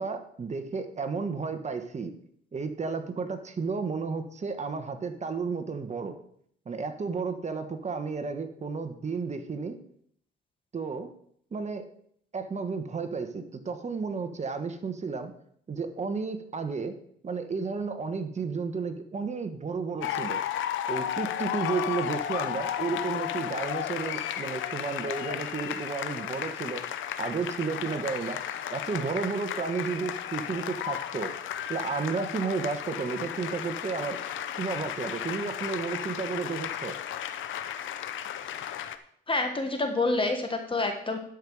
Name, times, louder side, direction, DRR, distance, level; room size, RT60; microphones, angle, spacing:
voice 1, 0.0-2.1 2.5-6.2 6.6-9.8 10.7-11.1 11.5-11.8 12.3-15.3 15.7-17.0 17.2-20.4 20.9-26.8 27.2-28.4 28.7-31.3 31.7-34.2 34.6-37.0, right 5 dB, 35° right, 8 dB, 1.3 m, -32 dB
sound 1, 20.0-39.0, left 10 dB, 75° left, 0.7 m, -34 dB
voice 2, 39.3-41.2, left 2 dB, 25° left, 5 dB, 1.5 m, -27 dB
11.5 x 5.4 x 4.9 m, 0.65 s
cardioid pair, 90°, 20 cm